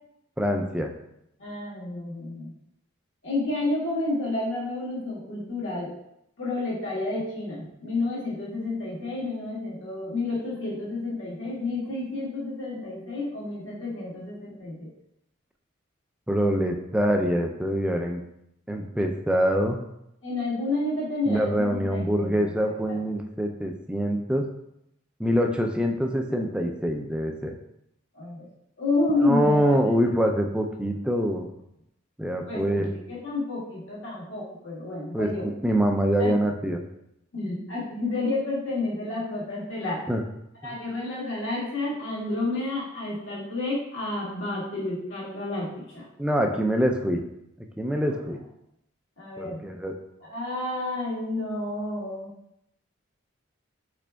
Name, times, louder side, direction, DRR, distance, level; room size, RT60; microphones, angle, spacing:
voice 1, 0.4-0.9 16.3-18.2 18.7-19.8 21.3-24.4 25.2-27.5 29.2-31.5 32.2-32.9 35.1-36.8 40.1-40.2 40.6-40.7 46.2-47.2 47.8-48.4 49.4-49.9, equal, 5° right, 3 dB, 0.3 m, -25 dB
voice 2, 1.4-2.5 3.2-5.9 6.4-14.9 20.2-23.0 28.1-28.5 28.8-29.8 32.5-35.5 36.2-36.3 37.3-40.0 40.6-46.0 49.2-49.6 50.2-52.3, left 2 dB, 65° left, -6 dB, 1.6 m, -30 dB
5.0 x 4.4 x 2.2 m, 0.80 s
head